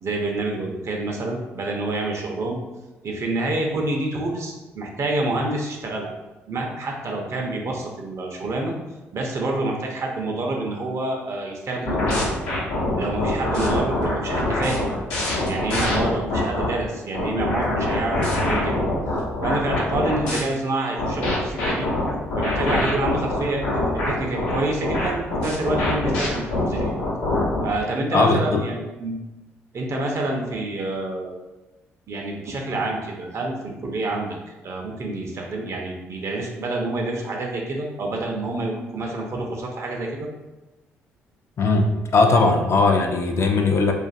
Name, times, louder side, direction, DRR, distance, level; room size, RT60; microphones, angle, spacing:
voice 1, 0.0-2.6 3.0-6.1 6.5-8.7 9.1-12.4 13.0-15.0 15.5-18.9 19.4-21.9 22.4-23.6 24.1-26.9 27.6-28.7 29.0-29.2 29.7-31.3 32.1-34.4 34.6-40.3, right 2 dB, 50° right, 0 dB, 0.6 m, -27 dB
sound 1, 11.9-16.7 17.1-20.4 21.0-27.7, left 2 dB, 80° left, 0.7 m, -24 dB
voice 2, 28.1-28.6 41.6-41.9 42.1-43.9, left 3 dB, 45° left, 3 dB, 0.4 m, -18 dB
2.5 x 2.4 x 2.4 m, 1.1 s
hypercardioid pair, 45°, 6 cm